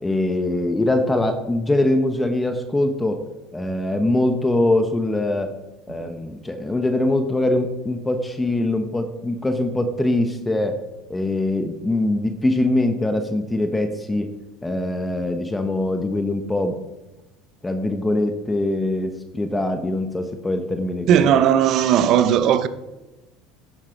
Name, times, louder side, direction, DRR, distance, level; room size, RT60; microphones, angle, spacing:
voice 1, 0.0-3.2 3.5-5.5 5.9-10.8 11.1-14.3 14.6-16.8 17.6-21.4, left 1 dB, 10° left, 0.9 m, -22 dB
voice 2, 21.1-22.7, right 9 dB, 55° right, 0.7 m, -17 dB
10.5 x 7.3 x 4.6 m
supercardioid pair, 105°, 0 cm